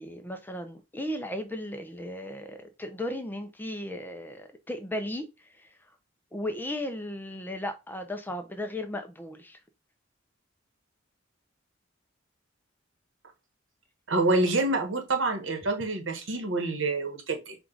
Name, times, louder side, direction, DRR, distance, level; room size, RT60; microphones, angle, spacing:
voice 1, 0.0-5.3 6.3-9.6, left 1 dB, 10° left, 0.5 m, -35 dB
voice 2, 14.1-17.6, right 2 dB, 80° right, 1.1 m, -27 dB
4.7 x 2.4 x 3.8 m
head